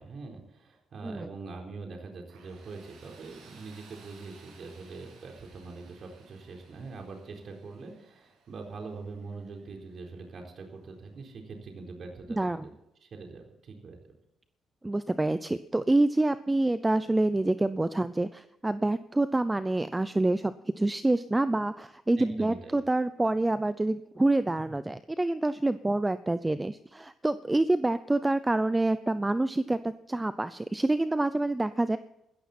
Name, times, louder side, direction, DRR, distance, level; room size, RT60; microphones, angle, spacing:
voice 1, 0.0-12.7 13.0-14.1 22.2-22.8, right 4 dB, 55° right, 2 dB, 4.1 m, -43 dB
Tools, 2.3-11.0, right 4 dB, 80° right, 7.4 m, -58 dB
voice 2, 14.8-32.0, right 2 dB, 15° right, 13 dB, 0.6 m, -27 dB
15.5 x 14.0 x 4.3 m, 0.86 s
cardioid pair, 90°, 0 cm